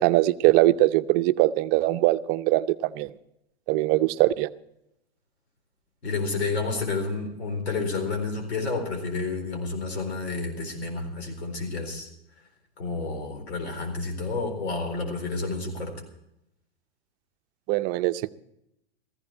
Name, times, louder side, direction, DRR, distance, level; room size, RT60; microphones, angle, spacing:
voice 1, 0.0-3.1 3.7-4.5 17.7-18.3, right 17 dB, 45° right, 12 dB, 0.7 m, -22 dB
voice 2, 6.0-12.1 12.8-15.9, left 3 dB, 80° left, 4 dB, 4.2 m, -30 dB
16.5 x 15.0 x 4.4 m, 0.81 s
hypercardioid pair, 100°, 32 cm